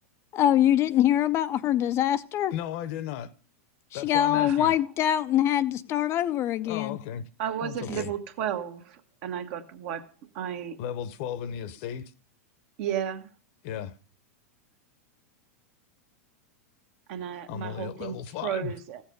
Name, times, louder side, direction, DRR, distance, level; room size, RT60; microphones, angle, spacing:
voice 1, 0.3-2.5 3.9-7.0, left 11 dB, 30° left, 0.5 m, -24 dB
voice 2, 2.5-3.3 3.9-4.7 6.6-7.3 7.6-8.1 10.8-12.1 13.6-13.9 17.5-18.7, left 10 dB, 55° left, 0.8 m, -35 dB
voice 3, 4.3-4.7 7.4-10.1 10.3-10.8 12.8-13.3 17.1-19.0, right 9 dB, 55° right, 1.4 m, -33 dB
14.5 x 7.1 x 5.1 m
hypercardioid pair, 125°, 8 cm